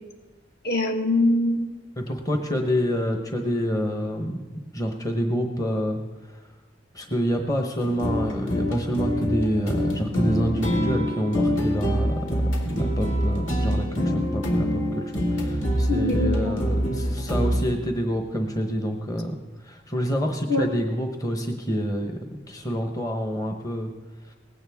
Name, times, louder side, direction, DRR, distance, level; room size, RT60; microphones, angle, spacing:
voice 1, 0.6-1.8 15.9-16.6 20.5-20.7, left 1 dB, 55° left, 3 dB, 1.7 m, -23 dB
voice 2, 2.0-4.4 4.7-6.0 6.3-6.4 6.9-19.3 19.6-22.2 22.5-23.9 24.3-24.4, equal, 20° left, 4 dB, 1.0 m, -27 dB
sound 1, 7.8-17.8, equal, 75° left, 2.3 m, -25 dB
19.0 x 16.0 x 3.6 m, 1.2 s
head